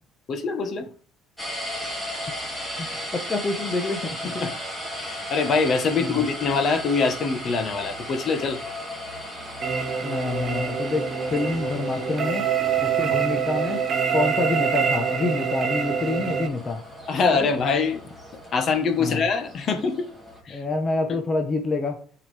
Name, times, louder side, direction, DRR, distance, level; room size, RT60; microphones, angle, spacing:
voice 1, 0.3-0.9 4.2-4.5 4.9-8.6 13.1-13.2 17.1-18.0 18.5-20.1 20.4-20.6 21.1-21.2, left 4 dB, 40° left, 7 dB, 1.2 m, -24 dB
sound 1, 1.4-20.4, equal, 10° left, 2.4 m, -36 dB
voice 2, 3.3-4.2 6.0-6.2 10.0-11.0 11.3-12.4 12.8-13.8 14.1-16.8 17.4-17.5 19.0-19.2 20.5-22.0, left 3 dB, 25° left, 3 dB, 0.9 m, -27 dB
sound 2, 9.6-16.5, right 7 dB, 30° right, 1.6 m, -25 dB
10.5 x 4.8 x 3.4 m, 0.42 s
cardioid pair, 140°, 0 cm